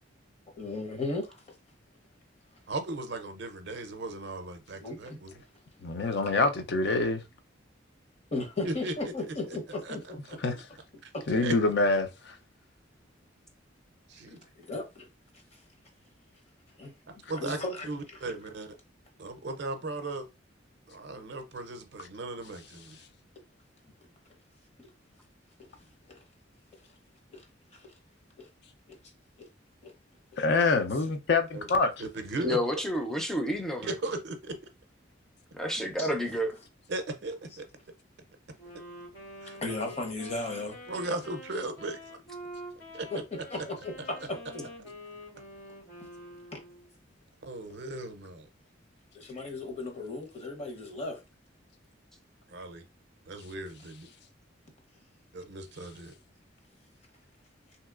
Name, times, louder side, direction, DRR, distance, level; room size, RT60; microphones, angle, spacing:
voice 1, 0.6-1.4 4.8-5.2 8.3-10.2 10.5-10.6 11.1-11.2 14.3-15.1 16.8-16.9 17.4-18.2 24.8-24.9 26.1-26.2 27.3-27.4 27.7-27.9 28.4-28.5 28.9-29.0 29.8-29.9 36.0-36.1 39.6-40.7 43.1-44.6 46.5-46.6 49.1-51.2, left 2 dB, 35° left, 0.8 m, -36 dB
voice 2, 2.7-5.4 8.6-9.1 9.5-9.6 9.8-10.0 10.3-10.4 11.0-11.1 11.4-11.5 14.1-14.4 17.3-18.8 19.2-20.2 20.9-23.0 31.5-31.6 32.0-32.6 33.8-34.6 36.9-37.7 39.4-39.6 40.9-42.2 42.9-43.2 47.4-48.5 52.5-52.8 53.3-54.1 55.3-56.1, right 2 dB, 60° right, 0.5 m, -37 dB
voice 3, 5.8-7.2 10.4-10.5 11.3-12.3 30.4-31.9, left 3 dB, 60° left, 0.5 m, -25 dB
voice 4, 32.4-33.9 35.5-36.5, equal, ahead, 0.4 m, -30 dB
Wind instrument woodwind instrument, 38.6-46.9, equal, 90° left, 1.9 m, -46 dB
3.1 x 2.8 x 2.3 m
head